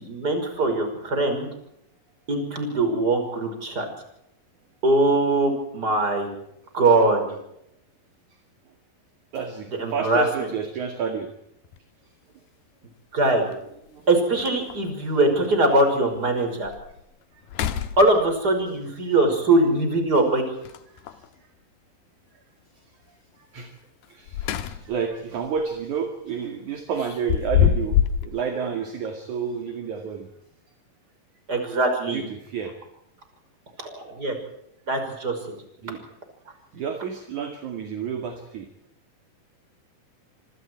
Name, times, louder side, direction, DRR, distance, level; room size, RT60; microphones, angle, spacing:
voice 1, 0.0-1.5 2.3-3.9 4.8-6.3 6.7-7.2 9.8-10.2 13.1-13.5 14.1-16.7 18.0-20.4 31.5-32.2 33.8-34.3 34.9-35.3, right 2 dB, 25° right, 5 dB, 6.2 m, -21 dB
voice 2, 9.3-11.3 13.9-14.1 17.3-17.7 20.9-21.2 23.1-23.7 24.1-30.3 32.1-32.7 35.8-36.0 36.7-38.7, right 6 dB, 55° right, 5 dB, 3.4 m, -30 dB
sound 1, 11.6-11.8 13.5-13.6 14.0-14.1 14.4-14.9 15.5-15.6 16.1-16.2 16.6-17.0 17.4-18.5 20.6-21.3 24.0-25.1 25.5-25.7 27.0-28.3, left 9 dB, 90° left, 3.2 m, -25 dB
26.5 x 26.0 x 4.7 m, 0.78 s
omnidirectional pair, 4.3 m